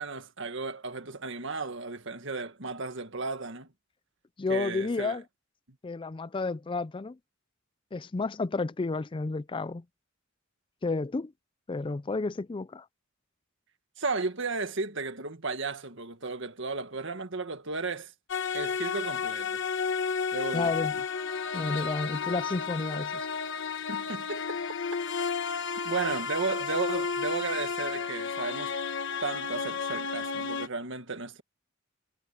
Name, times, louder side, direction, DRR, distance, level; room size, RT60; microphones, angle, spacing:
voice 1, 0.0-3.7 4.5-5.2 14.0-18.1 18.5-19.6 20.3-20.7 23.9-24.4 25.8-28.7 29.2-31.4, right 3 dB, 65° right, 1.8 m, -34 dB
voice 2, 4.4-5.2 5.8-7.2 7.9-9.8 10.8-11.3 11.7-12.8 20.5-20.9 21.5-23.3, left 3 dB, 25° left, 0.4 m, -31 dB
sound 1, 18.3-30.7, left 5 dB, 65° left, 1.3 m, -32 dB
head